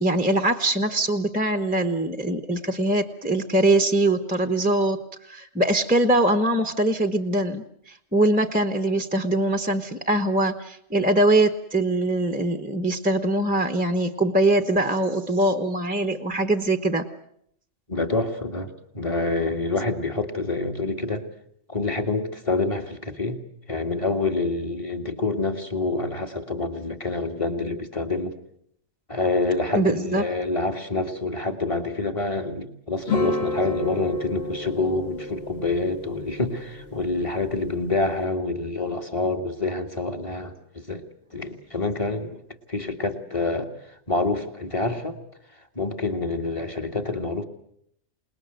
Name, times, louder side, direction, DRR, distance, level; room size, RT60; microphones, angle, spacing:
voice 1, 0.0-5.0 5.3-17.1 29.7-30.2, right 1 dB, 5° right, 9 dB, 1.0 m, -22 dB
voice 2, 17.9-21.3 21.7-23.4 23.7-28.3 29.1-41.0 41.3-42.4 42.7-43.7 44.1-45.2 45.8-47.4, left 3 dB, 25° left, 6 dB, 2.0 m, -27 dB
sound 1, 33.1-38.2, left 2 dB, 45° left, 2.1 m, -31 dB
28.0 x 20.0 x 8.0 m, 0.70 s
omnidirectional pair, 1.5 m